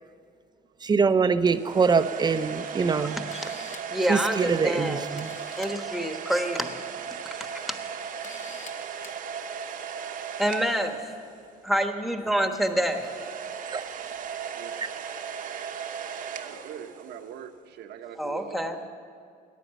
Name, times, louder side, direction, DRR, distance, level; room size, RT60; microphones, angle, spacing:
voice 1, 0.8-3.2 4.1-5.3 13.7-13.8, right 5 dB, 25° right, 0.6 m, -24 dB
sound 1, 1.5-11.6 12.6-17.4, right 7 dB, 55° right, 0.9 m, -37 dB
Camera, 2.6-2.7 3.1-4.0 4.8-4.9 5.2-5.7 6.9-7.1 7.6-7.7 8.2-8.7 9.0-9.2, left 5 dB, 45° left, 1.1 m, -46 dB
voice 2, 3.0-3.6 3.9-5.1 5.6-6.7 7.5-7.6 10.4-11.1 11.6-13.0 18.2-18.8, equal, ahead, 1.2 m, -27 dB
voice 3, 16.4-18.9, right 8 dB, 75° right, 1.0 m, -42 dB
14.5 x 10.0 x 7.5 m
cardioid pair, 110°, 17 cm